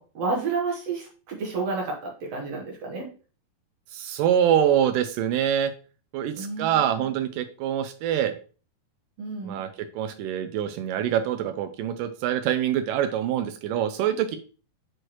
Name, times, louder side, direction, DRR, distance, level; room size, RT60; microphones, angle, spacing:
voice 1, 0.0-3.1 6.4-7.1 9.2-9.6, right 4 dB, 60° right, 0 dB, 1.9 m, -31 dB
voice 2, 3.9-5.7 6.1-8.4 9.4-9.7 10.0-14.4, right 10 dB, 80° right, 9 dB, 2.0 m, -25 dB
7.8 x 4.7 x 3.0 m, 0.37 s
omnidirectional pair, 4.3 m